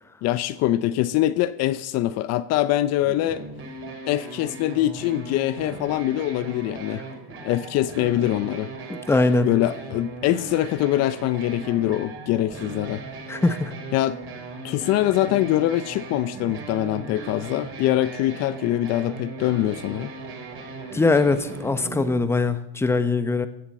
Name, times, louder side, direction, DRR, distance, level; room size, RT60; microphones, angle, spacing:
voice 1, 0.2-3.4 4.0-7.0 7.4-8.7 9.4-13.0 13.9-14.2 14.6-20.1, left 14 dB, 55° left, 15 dB, 0.6 m, -23 dB
sound 1, 3.0-22.2, right 3 dB, 40° right, 4.0 m, -38 dB
voice 2, 8.9-9.5 13.3-13.7 20.9-23.5, left 3 dB, 10° left, 11 dB, 0.9 m, -21 dB
16.0 x 7.3 x 7.6 m, 0.79 s
cardioid pair, 130°, 31 cm